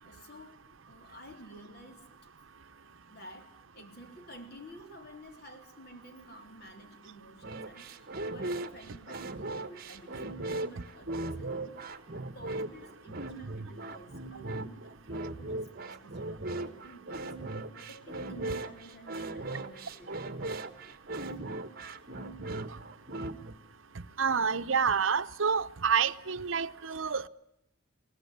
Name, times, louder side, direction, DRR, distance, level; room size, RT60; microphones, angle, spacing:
voice 1, 0.0-0.6 0.9-2.1 3.1-17.3 17.7-20.3 21.2-21.4, equal, 50° left, 3.4 m, -51 dB
sound 1, 7.4-23.5, right 2 dB, 45° right, 1.4 m, -38 dB
voice 2, 24.2-27.3, right 6 dB, 70° right, 0.8 m, -28 dB
22.5 x 18.0 x 9.9 m
head